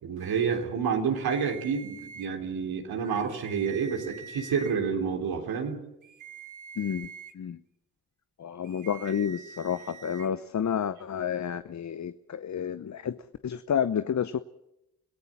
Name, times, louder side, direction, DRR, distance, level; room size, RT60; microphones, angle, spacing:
voice 1, 0.0-5.8, right 6 dB, 80° right, 3 dB, 3.4 m, -29 dB
sound 1, 1.3-2.3 3.1-4.7 6.0-7.3 8.6-10.3, right 6 dB, 55° right, 1.8 m, -45 dB
voice 2, 6.8-7.6 8.4-14.4, left 8 dB, 50° left, 13 dB, 0.8 m, -30 dB
27.5 x 16.5 x 7.4 m, 0.86 s
supercardioid pair, 50°, 36 cm